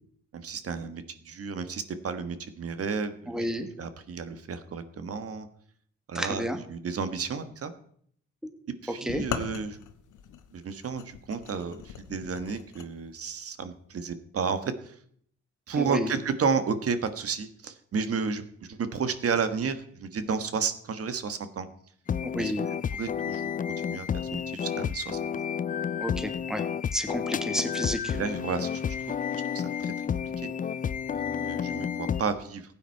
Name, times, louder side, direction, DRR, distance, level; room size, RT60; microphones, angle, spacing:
voice 1, 0.3-3.4 3.8-5.5 6.1-7.7 8.8-9.8 10.5-14.9 15.7-18.4 18.7-21.7 22.4-22.5 23.0-23.5 23.9-24.1 24.3-25.4 28.1-28.8 29.1-29.2 29.5-29.9 30.4-30.5 31.1-32.7, right 5 dB, 50° right, 11 dB, 1.4 m, -32 dB
voice 2, 3.3-3.7 6.1-6.6 9.0-9.2 15.8-16.1 22.2-22.7 26.0-26.6 26.9-28.2, equal, ahead, 7 dB, 1.7 m, -31 dB
sound 1, 9.1-12.9, left 9 dB, 80° left, 1.2 m, -39 dB
sound 2, 22.1-32.2, left 8 dB, 30° left, 0.4 m, -31 dB
15.5 x 9.2 x 4.6 m, 0.63 s
cardioid pair, 90°, 30 cm